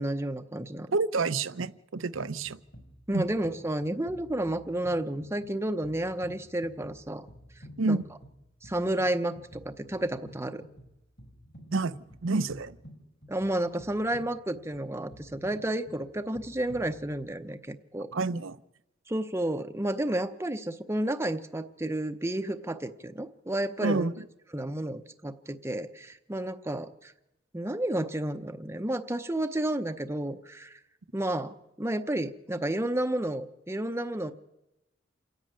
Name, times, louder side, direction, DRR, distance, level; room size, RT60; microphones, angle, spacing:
voice 1, 0.0-0.9 3.1-7.3 7.9-8.0 8.6-10.6 13.3-18.1 19.1-24.1 24.5-27.1 27.5-30.8 31.1-34.3, right 1 dB, 15° right, 7 dB, 0.7 m, -31 dB
voice 2, 0.9-2.6 3.1-3.2 7.8-8.0 11.7-12.8 18.1-18.6 23.8-24.1, right 3 dB, 80° right, 15 dB, 0.7 m, -28 dB
sound 1, 2.1-17.5, equal, 55° left, 4.2 m, -51 dB
28.0 x 10.5 x 8.9 m, 0.93 s
head